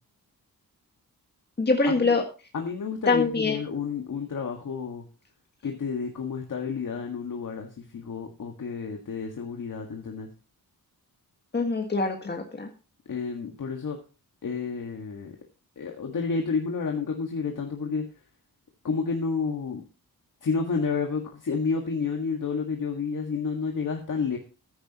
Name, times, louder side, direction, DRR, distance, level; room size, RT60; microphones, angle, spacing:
voice 1, 1.6-2.2 3.1-3.6 11.5-12.7, left 3 dB, 30° left, 2 dB, 1.7 m, -24 dB
voice 2, 2.5-5.1 5.6-10.3 13.1-14.0 14.4-15.3 15.8-18.1 18.8-19.8 20.4-24.4, left 5 dB, 60° left, 2 dB, 1.8 m, -30 dB
14.5 x 10.0 x 2.9 m, 0.33 s
wide cardioid pair, 125°, 36 cm